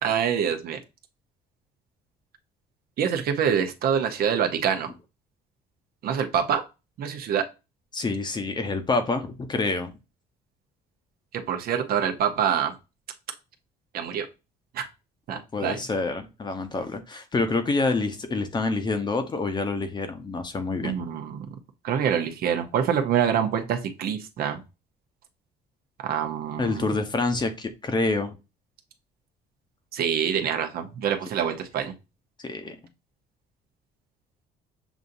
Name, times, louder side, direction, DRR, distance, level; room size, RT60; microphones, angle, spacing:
voice 1, 0.0-0.8 3.0-4.9 6.0-6.6 7.0-7.4 11.5-12.7 13.9-14.3 14.7-14.8 15.3-15.8 20.8-21.5 21.8-24.6 26.0-26.9 29.9-31.9, right 8 dB, 65° right, 7 dB, 0.8 m, -25 dB
voice 2, 7.9-9.9 15.5-20.9 26.6-28.4 32.4-32.8, left 3 dB, 25° left, 8 dB, 0.8 m, -27 dB
7.0 x 2.6 x 2.5 m, 0.27 s
cardioid pair, 110°, 17 cm